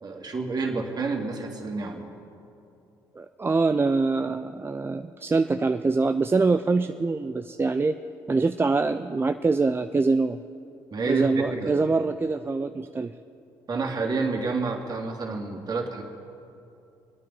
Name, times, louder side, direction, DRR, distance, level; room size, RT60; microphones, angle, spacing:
voice 1, 0.0-2.1 10.9-11.8 13.7-16.0, right 3 dB, 45° right, 1 dB, 2.3 m, -29 dB
voice 2, 3.2-8.0 8.3-10.4 11.1-13.1, right 3 dB, 25° right, 8 dB, 0.5 m, -24 dB
22.5 x 9.4 x 5.5 m, 2.7 s
hypercardioid pair, 55°, 10 cm